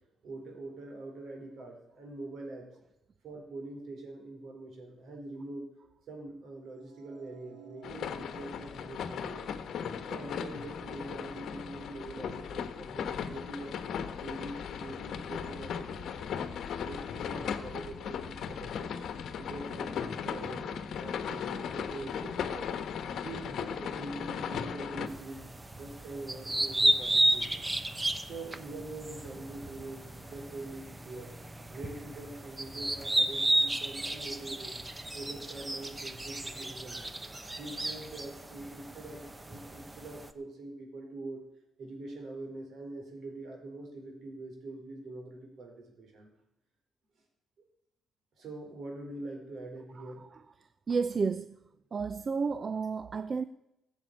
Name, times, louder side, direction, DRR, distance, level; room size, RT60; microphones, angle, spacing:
voice 1, 0.2-2.7 3.2-5.7 6.1-9.5 10.1-13.8 14.2-16.4 16.8-18.9 19.4-22.7 23.2-25.4 25.8-27.7 28.2-31.3 31.7-34.8 35.1-37.2 37.6-41.4 41.8-46.3 48.4-50.2, right 2 dB, 65° right, 4.5 m, -44 dB
sound 1, 6.8-13.0, right 5 dB, 80° right, 3.0 m, -57 dB
sound 2, 7.8-25.1, left 7 dB, 70° left, 1.2 m, -37 dB
sound 3, 25.1-40.3, right 1 dB, 15° right, 1.0 m, -33 dB
voice 2, 50.9-51.6 51.9-53.4, right 5 dB, 40° right, 0.5 m, -31 dB
15.0 x 7.2 x 8.3 m
cardioid pair, 90°, 0 cm